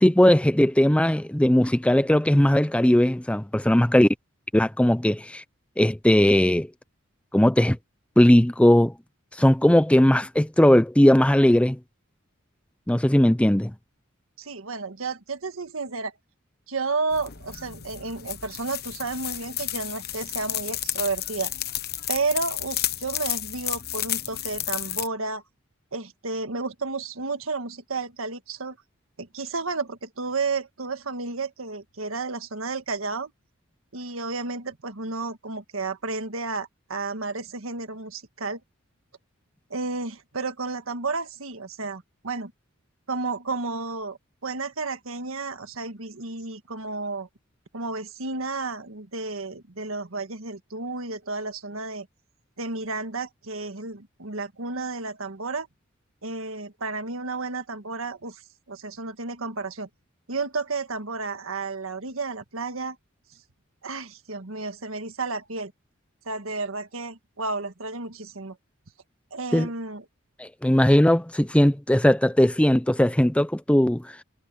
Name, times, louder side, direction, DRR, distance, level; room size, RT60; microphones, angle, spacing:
voice 1, 0.0-4.1 4.5-5.4 5.8-6.7 7.3-7.8 8.2-8.9 9.4-11.8 12.9-13.7 69.5-69.7 70.4-74.1, left 1 dB, 5° left, 0.6 m, -19 dB
voice 2, 14.4-16.1 16.7-21.5 22.1-25.4 25.9-28.8 29.2-33.3 33.9-38.6 39.7-42.5 43.1-47.3 47.7-52.1 52.6-55.7 56.2-58.4 58.7-59.9 60.3-63.0 63.8-65.7 66.2-68.6 69.3-70.0, right 3 dB, 85° right, 1.6 m, -32 dB
sound 1, 17.1-25.1, left 13 dB, 50° left, 1.1 m, -32 dB
head